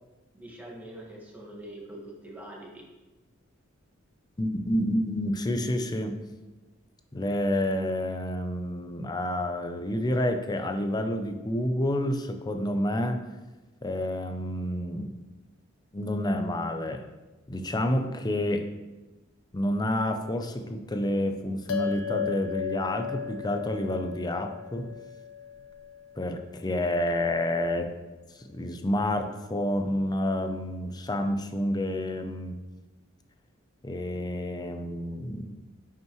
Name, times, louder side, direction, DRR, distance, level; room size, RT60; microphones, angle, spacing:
voice 1, 0.3-2.9, right 1 dB, 10° right, -3 dB, 1.6 m, -44 dB
voice 2, 4.4-6.1 7.1-13.2 13.8-15.1 15.9-17.0 17.5-18.7 19.5-25.0 26.2-27.9 28.4-32.6 33.8-35.6, left 1 dB, 20° left, 6 dB, 0.6 m, -29 dB
sound 1, 21.7-26.4, left 8 dB, 75° left, 0.7 m, -35 dB
9.2 x 5.8 x 3.1 m, 1.1 s
head